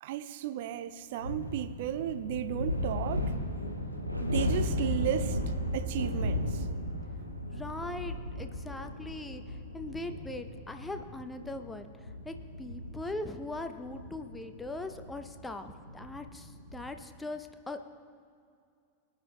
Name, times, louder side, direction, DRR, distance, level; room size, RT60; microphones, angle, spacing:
voice 1, 0.0-3.3 4.2-5.4 5.7-6.7, right 11 dB, 50° right, 0.3 m, -34 dB
sound 1, 1.2-17.0, left 1 dB, 90° left, 0.9 m, -36 dB
voice 2, 7.5-17.9, left 2 dB, 10° left, 0.6 m, -41 dB
24.0 x 9.1 x 2.2 m
figure-of-eight pair, 90°, 0 cm